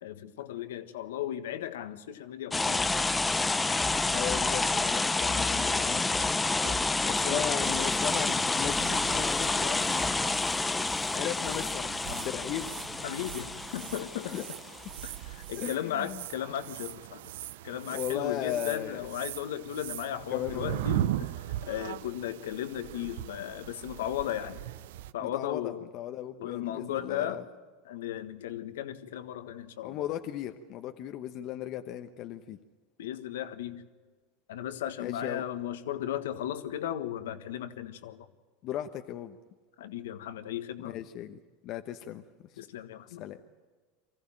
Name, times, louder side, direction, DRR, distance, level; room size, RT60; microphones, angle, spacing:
voice 1, 0.0-3.1 6.6-6.8 7.2-7.4 13.0-14.3 15.0-17.2 17.6-21.3 21.7-24.6 25.1-25.8 26.4-27.4 27.8-30.1 33.0-33.8 34.5-38.3 39.8-40.9 42.6-43.2, left 11 dB, 85° left, 10 dB, 1.5 m, -36 dB
sound 1, 2.5-15.1, left 3 dB, 10° left, 0.8 m, -29 dB
voice 2, 4.1-6.1 7.0-12.7 14.2-14.4 15.5-16.2 17.9-19.1 20.3-20.9 25.2-27.4 29.8-32.6 35.0-35.4 38.6-39.4 40.8-42.2 43.1-43.4, left 11 dB, 50° left, 7 dB, 1.0 m, -37 dB
sound 2, 7.6-25.1, right 14 dB, 75° right, 0.6 m, -39 dB
24.5 x 15.0 x 8.8 m, 1.5 s
supercardioid pair, 110°, 0 cm